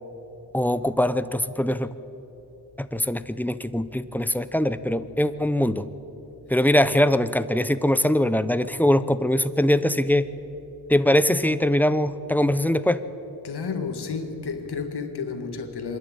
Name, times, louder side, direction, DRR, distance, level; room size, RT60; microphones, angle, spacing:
voice 1, 0.5-1.9 2.8-5.9 6.5-10.3 10.9-13.0, left 1 dB, 5° left, 0.8 m, -22 dB
voice 2, 13.4-16.0, left 5 dB, 80° left, 1.8 m, -31 dB
26.0 x 11.5 x 8.7 m
wide cardioid pair, 75°, 39 cm